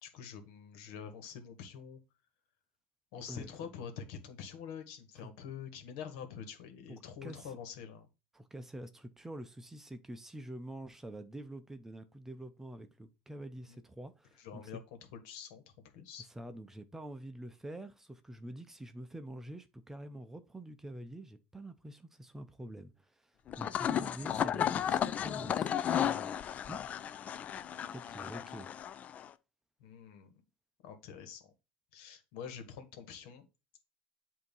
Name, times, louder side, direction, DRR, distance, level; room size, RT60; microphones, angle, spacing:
voice 1, 0.0-2.0 3.1-8.1 13.6-13.8 14.4-14.8 15.1-15.6 15.9-16.3 29.8-30.3 30.8-31.5 31.9-33.5, left 7 dB, 75° left, 1.6 m, -46 dB
voice 2, 6.9-7.5 8.3-14.7 16.3-26.8 27.2-27.4 27.9-28.7, right 1 dB, 10° right, 0.6 m, -47 dB
sound 1, 23.5-29.3, left 9 dB, 35° left, 0.4 m, -34 dB
7.9 x 2.8 x 5.4 m
supercardioid pair, 120°, 4 cm